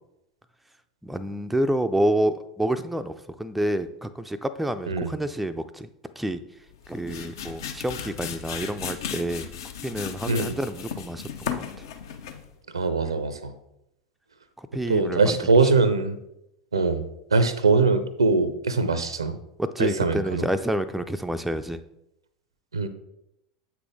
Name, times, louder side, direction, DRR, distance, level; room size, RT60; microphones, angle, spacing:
voice 1, 1.0-5.9 6.2-6.4 6.9-9.5 9.8-11.7 14.6-15.4 19.6-21.8, right 1 dB, 5° right, 9 dB, 0.4 m, -28 dB
sound 1, 6.7-12.5, left 8 dB, 60° left, 0.7 m, -35 dB
voice 2, 12.7-13.5 14.9-16.2 16.7-17.0 17.3-19.4 19.8-20.4 22.7-22.9, right 4 dB, 75° right, 12 dB, 0.6 m, -22 dB
8.0 x 6.0 x 3.6 m, 0.83 s
figure-of-eight pair, 80°, 3 cm